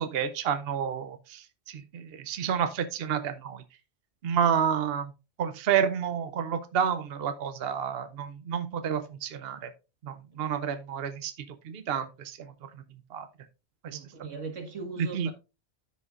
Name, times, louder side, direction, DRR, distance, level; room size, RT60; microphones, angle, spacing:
voice 1, 0.0-3.6 4.2-5.1 5.4-9.7 10.0-11.3 11.7-12.4 13.1-13.3 13.8-14.0 15.1-15.3, right 8 dB, 60° right, 0.8 m, -30 dB
voice 2, 13.9-15.3, right 4 dB, 80° right, 2.0 m, -39 dB
13.5 x 5.2 x 2.4 m
omnidirectional pair, 1.3 m